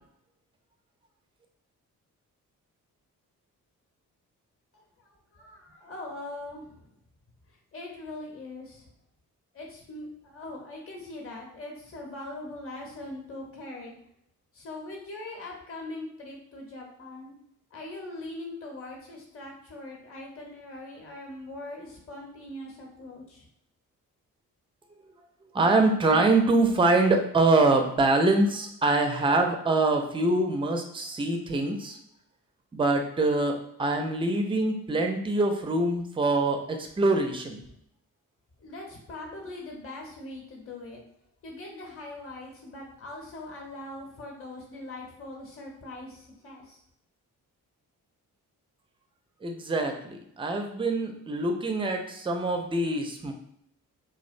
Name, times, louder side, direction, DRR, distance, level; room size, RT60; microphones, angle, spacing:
voice 1, 4.7-6.9 7.5-8.9 9.5-14.0 14.5-17.4 17.7-23.5 38.6-41.0 41.4-46.8, left 2 dB, 35° left, 0 dB, 0.9 m, -41 dB
voice 2, 25.5-32.0 32.7-37.6 49.4-53.3, right 2 dB, 15° right, 4 dB, 0.4 m, -24 dB
2.5 x 2.1 x 2.5 m, 0.72 s
hypercardioid pair, 40°, 41 cm